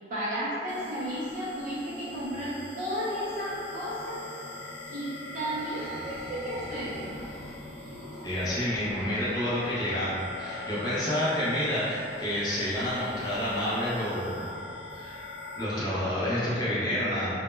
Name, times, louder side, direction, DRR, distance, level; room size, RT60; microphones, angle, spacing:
voice 1, 0.1-4.3 4.9-7.2, equal, 45° right, -9 dB, 0.4 m, -33 dB
sound 1, 0.7-15.7, left 2 dB, 85° left, 0.3 m, -42 dB
sound 2, 5.3-10.1, equal, 20° right, 0.8 m, -45 dB
voice 2, 8.2-14.5 14.9-15.2 15.6-17.3, left 1 dB, 20° left, -10 dB, 0.4 m, -29 dB
2.0 x 2.0 x 3.1 m, 2.6 s
head